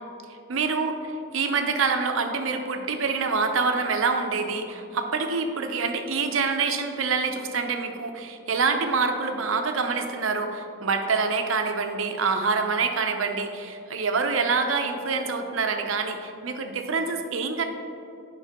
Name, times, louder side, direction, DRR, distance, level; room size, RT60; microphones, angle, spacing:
voice 1, 0.5-17.6, right 4 dB, 85° right, 5 dB, 0.7 m, -26 dB
9.3 x 5.6 x 3.6 m, 2.6 s
head